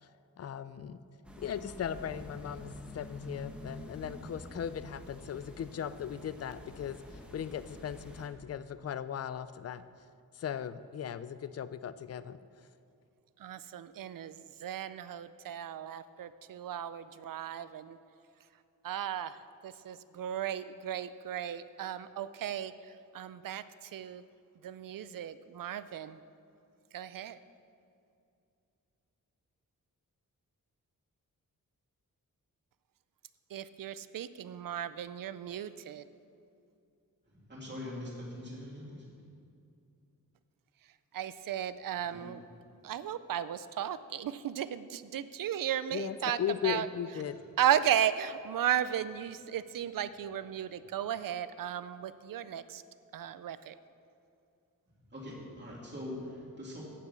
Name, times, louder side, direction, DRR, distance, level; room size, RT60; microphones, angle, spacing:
voice 1, 0.4-1.0 1.4-7.0 7.3-9.8 10.3-12.4 45.9-47.4, left 9 dB, 50° left, 14 dB, 0.4 m, -37 dB
sound 1, 1.2-8.3, left 1 dB, 5° right, 1.1 m, -47 dB
voice 2, 13.4-14.4 14.6-18.0 18.8-19.4 19.6-22.7 23.1-23.6 23.9-24.2 24.6-26.2 26.9-27.4 33.5-36.0 41.1-42.4 42.8-46.4 46.6-46.9 47.6-52.8 53.1-53.7, right 10 dB, 75° right, 14 dB, 0.5 m, -35 dB
voice 3, 37.5-39.0 42.1-42.3 55.1-56.8, left 1 dB, 30° right, -4 dB, 2.7 m, -42 dB
8.6 x 6.8 x 8.1 m, 2.5 s
wide cardioid pair, 140°, 34 cm